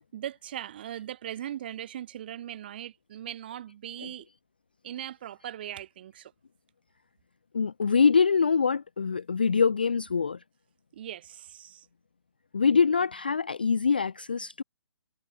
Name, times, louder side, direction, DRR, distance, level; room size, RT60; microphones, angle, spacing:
voice 1, 0.1-4.3 4.8-6.3 10.9-11.9, right 11 dB, 25° right, 2.9 m, -39 dB
voice 2, 7.5-10.4 12.5-14.6, left 5 dB, 25° left, 0.3 m, -24 dB
hypercardioid pair, 180°, 13 cm